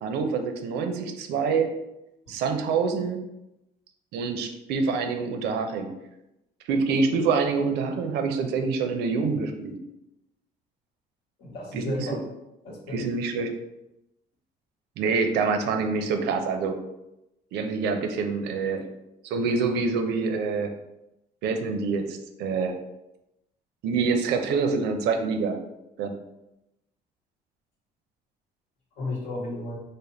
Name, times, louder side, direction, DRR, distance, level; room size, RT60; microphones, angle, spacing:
voice 1, 0.0-1.7 2.3-3.2 4.1-5.9 6.7-9.8 11.7-12.1 12.9-13.5 15.0-16.8 17.5-18.8 19.2-20.7 21.4-22.7 23.8-25.6 26.0-26.1, right 4 dB, 80° right, 6 dB, 0.5 m, -26 dB
voice 2, 11.4-12.2 12.6-13.0 29.0-29.8, left 2 dB, 85° left, -2 dB, 1.0 m, -33 dB
3.4 x 2.1 x 4.0 m, 0.90 s
cardioid pair, 110°, 17 cm